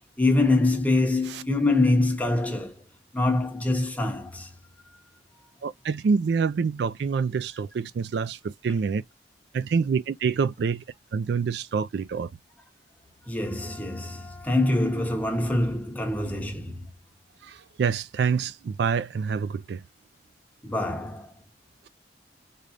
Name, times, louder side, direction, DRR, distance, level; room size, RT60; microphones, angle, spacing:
voice 1, 0.2-2.8 3.1-4.5 13.3-16.8 20.6-21.3, left 2 dB, 10° left, 1.0 m, -24 dB
voice 2, 5.6-9.0 9.5-10.8 11.1-12.3 17.4-19.8, right 5 dB, 65° right, 0.3 m, -26 dB
3.9 x 3.3 x 2.4 m
head